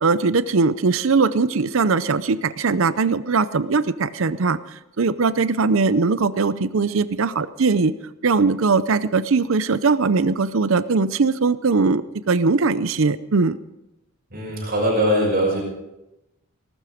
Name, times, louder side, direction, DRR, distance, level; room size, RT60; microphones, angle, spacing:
voice 1, 0.0-4.6 5.0-7.9 8.2-13.6, right 4 dB, 65° right, 15 dB, 0.6 m, -20 dB
voice 2, 14.3-15.6, equal, 45° right, -3 dB, 6.3 m, -21 dB
19.5 x 12.5 x 5.1 m, 0.93 s
head